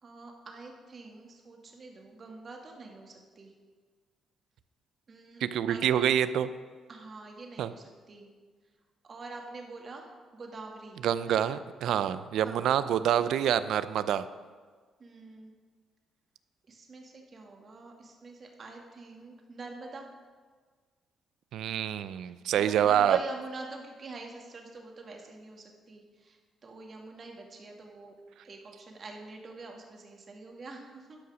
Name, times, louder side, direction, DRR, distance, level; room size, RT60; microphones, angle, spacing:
voice 1, 0.0-3.5 5.1-5.4 5.7-6.1 6.9-8.3 9.0-10.1 10.3-11.0 11.3-11.5 12.4-12.7 15.0-15.5 16.7-20.1 22.6-26.4 26.6-28.1 28.4-31.2, right 3 dB, 45° right, 1 dB, 1.9 m, -45 dB
voice 2, 5.4-6.5 7.6-7.7 11.0-14.2 21.5-23.2, right 10 dB, 80° right, 14 dB, 0.4 m, -26 dB
11.5 x 5.8 x 6.2 m, 1.5 s
cardioid pair, 90°, 0 cm